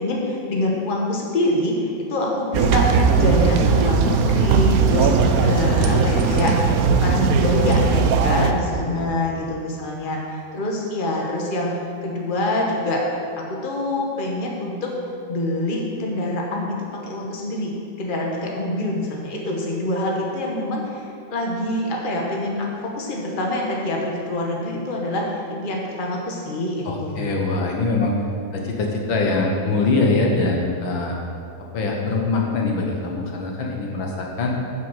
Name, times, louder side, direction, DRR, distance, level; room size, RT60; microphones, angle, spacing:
voice 1, 0.0-6.6 7.0-14.9 15.3-27.5, left 1 dB, 30° left, -1 dB, 1.5 m, -25 dB
sound 1, 2.5-8.5, right 5 dB, 65° right, 0.9 m, -18 dB
voice 2, 8.8-9.2 26.9-28.2 28.5-31.2 31.7-34.6, left 3 dB, 80° left, 0 dB, 2.1 m, -23 dB
9.8 x 6.2 x 7.4 m, 2.4 s
omnidirectional pair, 2.1 m